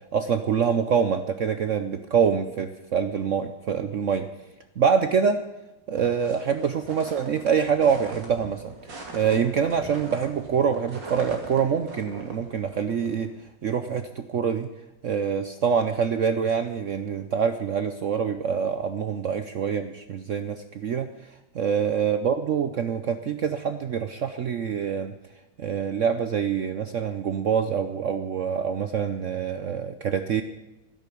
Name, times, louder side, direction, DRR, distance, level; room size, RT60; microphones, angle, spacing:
voice 1, 0.1-4.3 4.8-5.4 5.9-13.3 13.6-14.7 15.0-25.1 25.6-30.4, right 7 dB, 80° right, 9 dB, 0.6 m, -25 dB
sound 1, 6.0-13.5, right 3 dB, 60° right, 3.1 m, -42 dB
13.0 x 11.0 x 8.4 m, 1.0 s
omnidirectional pair, 2.2 m